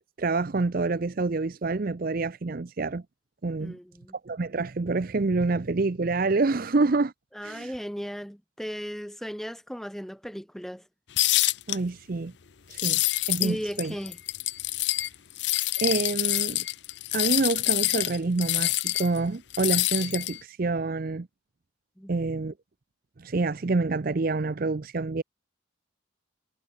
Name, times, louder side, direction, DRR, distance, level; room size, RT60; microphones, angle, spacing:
voice 1, 0.2-3.0 3.4-3.8 4.2-7.1 7.4-7.7 11.7-12.3 12.7-13.0 13.3-13.9 15.8-16.7 17.1-21.3 22.1-22.5 23.2-25.2, right 3 dB, 45° right, 0.6 m, -27 dB
voice 2, 3.6-4.2 7.3-10.8 13.4-14.2 22.0-22.3, equal, ahead, 4.1 m, -36 dB
sound 1, 11.2-11.8 12.7-13.5 13.8-15.1 15.4-19.2 19.5-20.4, left 17 dB, 60° left, 0.6 m, -26 dB
head